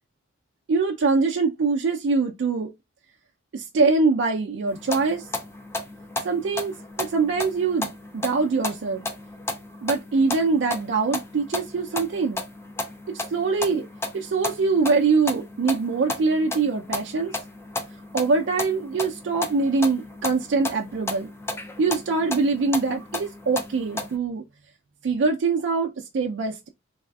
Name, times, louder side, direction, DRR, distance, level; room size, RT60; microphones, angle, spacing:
voice 1, 0.7-2.7 3.5-5.3 6.2-9.1 9.8-12.4 13.1-13.9 14.1-17.4 18.1-21.3 21.8-24.4 25.0-26.7, right 4 dB, 70° right, 0.4 m, -23 dB
sound 1, 4.7-24.2, left 2 dB, 15° left, 0.3 m, -34 dB
3.4 x 2.3 x 2.2 m
head